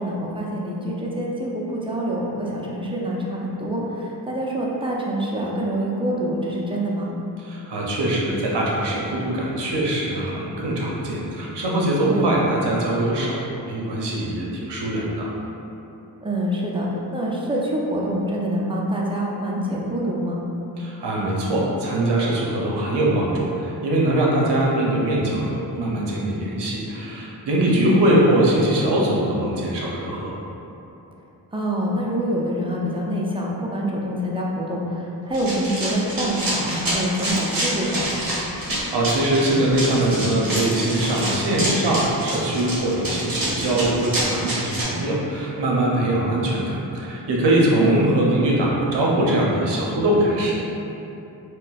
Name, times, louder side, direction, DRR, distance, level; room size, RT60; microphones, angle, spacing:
voice 1, 0.0-7.1 12.1-12.4 16.2-16.9 17.1-20.4 27.8-28.0 31.5-38.2 47.8-48.1, right 1 dB, 15° right, -4 dB, 0.4 m, -26 dB
voice 2, 7.4-13.4 13.7-15.3 20.8-30.3 38.7-50.5, right 1 dB, 75° right, -4 dB, 0.7 m, -22 dB
Run, 35.3-44.8, right 1 dB, 55° right, 1.1 m, -27 dB
4.2 x 2.1 x 2.3 m, 2.9 s
cardioid pair, 70°, 41 cm